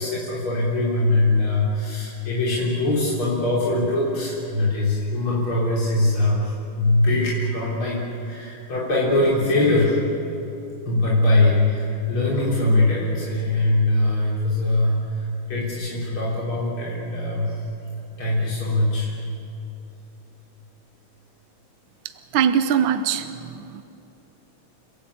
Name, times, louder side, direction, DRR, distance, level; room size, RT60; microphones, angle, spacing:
voice 1, 0.0-10.0 10.9-17.6 18.2-19.1, left 2 dB, 90° left, -6 dB, 4.5 m, -22 dB
voice 2, 22.3-23.8, right 8 dB, 75° right, 10 dB, 1.5 m, -22 dB
30.0 x 17.0 x 8.6 m, 2.9 s
omnidirectional pair, 2.2 m